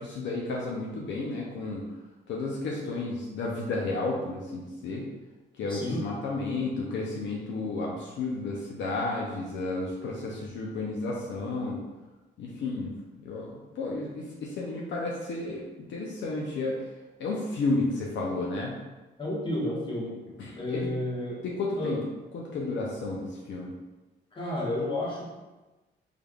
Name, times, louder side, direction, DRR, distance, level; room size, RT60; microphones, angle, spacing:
voice 1, 0.0-1.8 2.3-5.1 5.6-11.8 12.4-12.9 13.2-16.8 17.2-18.8 20.4-20.9 21.4-22.0 22.3-23.7, left 3 dB, 70° left, -3 dB, 0.6 m, -32 dB
voice 2, 5.7-6.0 19.2-20.1 20.6-21.4 21.8-21.9 24.3-25.3, left 1 dB, 25° left, -5 dB, 1.2 m, -31 dB
3.6 x 3.3 x 2.3 m, 1.1 s
cardioid pair, 90°, 20 cm